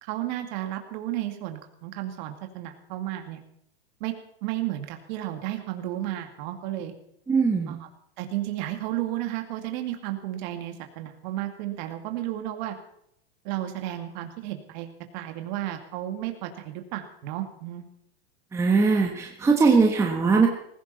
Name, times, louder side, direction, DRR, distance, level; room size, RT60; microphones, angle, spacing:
voice 1, 0.0-3.4 4.0-4.1 4.4-6.9 7.7-7.9 8.2-12.8 13.4-17.9, right 13 dB, 45° right, 5 dB, 2.2 m, -33 dB
voice 2, 7.3-7.7 18.5-20.5, right 4 dB, 10° right, 1 dB, 1.3 m, -20 dB
19.0 x 16.0 x 4.2 m, 0.73 s
supercardioid pair, 150°, 31 cm